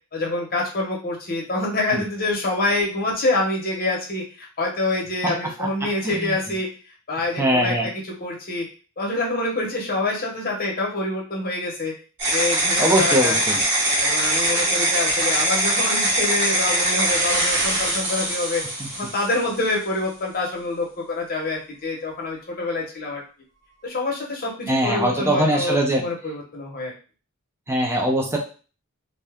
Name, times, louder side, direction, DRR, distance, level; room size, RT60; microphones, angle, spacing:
voice 1, 0.1-6.7 7.1-7.9 8.2-8.6 9.0-11.9 12.3-13.6 14.0-18.6 19.0-23.2 23.8-26.9, left 2 dB, 45° left, -2 dB, 0.9 m, -26 dB
voice 2, 7.4-7.9 12.8-13.6 24.7-26.0 27.7-28.4, right 1 dB, 10° right, 0 dB, 0.6 m, -21 dB
sound 1, 12.2-19.7, right 1 dB, 55° right, 1.1 m, -22 dB
2.7 x 2.3 x 3.4 m, 0.36 s
head